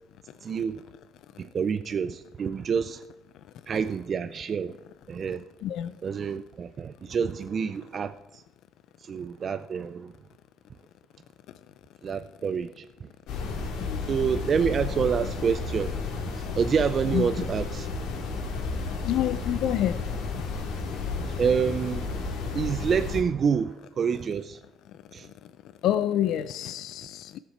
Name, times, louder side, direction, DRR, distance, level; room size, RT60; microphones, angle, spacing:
voice 1, 0.4-0.8 1.4-3.0 3.7-4.8 5.1-5.5 6.0-8.4 9.0-10.1 12.0-13.1 13.5-13.6 14.1-17.9 21.2-24.6 25.1-25.3, right 6 dB, 35° right, 0.3 m, -28 dB
voice 2, 5.6-6.0 13.8-14.1 17.1-17.3 19.0-20.0 25.8-27.4, left 11 dB, 65° left, 0.4 m, -27 dB
sound 1, 13.3-23.2, left 4 dB, 80° left, 2.4 m, -32 dB
16.5 x 7.4 x 4.3 m
cardioid pair, 150°, 0 cm